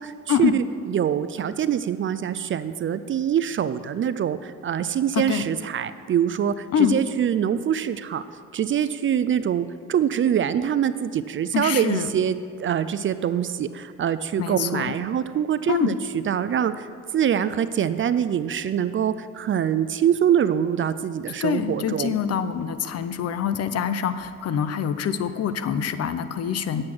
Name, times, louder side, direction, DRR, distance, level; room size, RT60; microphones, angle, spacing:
voice 1, 0.0-8.2 8.5-16.9 17.1-22.2, right 9 dB, 45° right, 13 dB, 0.4 m, -24 dB
voice 2, 11.5-12.1 14.4-14.9 15.7-15.9 21.4-26.8, left 8 dB, 55° left, 12 dB, 0.6 m, -25 dB
8.7 x 7.6 x 6.0 m, 2.3 s
cardioid pair, 90°, 30 cm